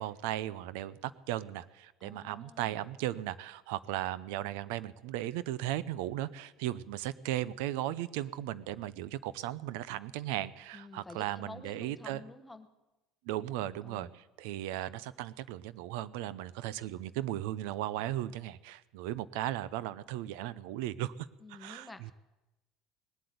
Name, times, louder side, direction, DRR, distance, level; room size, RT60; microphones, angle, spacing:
voice 1, 0.0-12.3 13.3-21.1 21.5-22.1, right 14 dB, 85° right, 18 dB, 0.6 m, -36 dB
voice 2, 2.0-2.8 10.7-12.7 13.8-14.1 21.4-22.1, left 2 dB, 5° left, 8 dB, 1.1 m, -49 dB
19.0 x 7.8 x 9.5 m, 1.0 s
cardioid pair, 155°, 0 cm